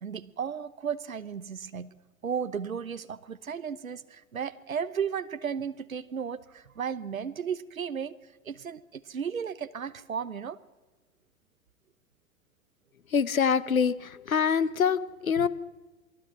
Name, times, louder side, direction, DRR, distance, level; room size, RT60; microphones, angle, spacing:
voice 1, 0.0-2.0 2.2-10.6 15.4-15.5, right 7 dB, 75° right, 1.2 m, -34 dB
voice 2, 13.1-15.5, left 6 dB, 75° left, 1.1 m, -25 dB
27.5 x 21.5 x 6.0 m
figure-of-eight pair, 95°, 42 cm